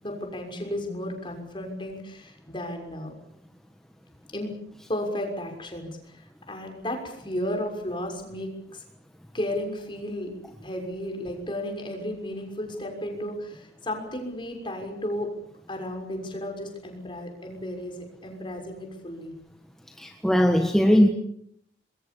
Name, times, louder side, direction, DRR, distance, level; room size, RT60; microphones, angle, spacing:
voice 1, 0.0-3.1 4.3-4.5 4.9-8.8 9.3-10.3 10.6-15.3 15.7-19.3, left 1 dB, 30° left, 3 dB, 6.3 m, -33 dB
voice 2, 20.0-21.1, equal, 5° left, 4 dB, 1.5 m, -19 dB
27.0 x 22.0 x 7.2 m, 0.72 s
head